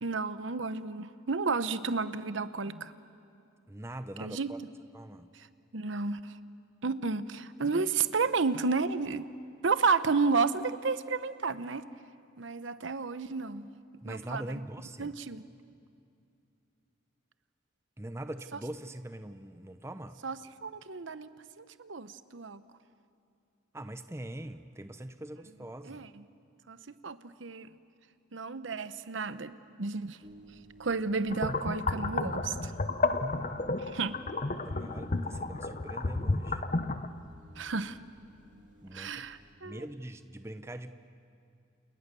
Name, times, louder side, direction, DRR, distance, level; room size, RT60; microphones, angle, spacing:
voice 1, 0.0-2.9 4.2-4.5 5.3-5.5 5.7-6.3 6.8-9.3 9.6-11.8 12.4-13.7 14.0-14.6 15.0-15.4 20.2-20.4 20.6-21.3 21.6-22.6 25.8-26.2 26.7-26.8 27.0-27.7 28.3-30.2 30.8-32.7 33.9-34.2 37.6-38.0 38.9-39.8, right 4 dB, 70° right, 13 dB, 0.9 m, -32 dB
voice 2, 3.7-4.6 4.9-5.3 14.0-15.1 18.0-20.2 23.7-26.1 34.3-36.6 38.8-39.2 39.6-40.9, right 1 dB, 15° right, 10 dB, 0.7 m, -42 dB
sound 1, 30.2-39.6, equal, 40° right, 2.5 m, -57 dB
sound 2, 31.3-37.1, left 3 dB, 40° left, 0.8 m, -32 dB
30.0 x 28.5 x 6.9 m, 2.5 s
head